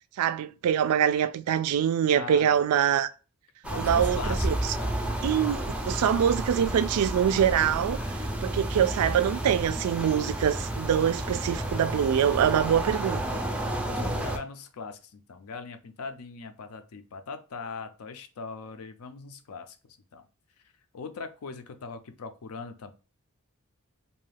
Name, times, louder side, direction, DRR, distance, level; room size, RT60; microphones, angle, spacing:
voice 1, 0.2-3.1 3.8-4.5 5.2-8.0 8.4-13.4, right 9 dB, 90° right, 0.3 m, -24 dB
voice 2, 2.1-2.6 3.6-5.3 8.0-8.2 13.8-20.2 20.9-22.9, left 4 dB, 80° left, 0.5 m, -41 dB
sound 1, 3.6-14.4, right 1 dB, 5° right, 0.3 m, -31 dB
2.7 x 2.3 x 3.2 m
head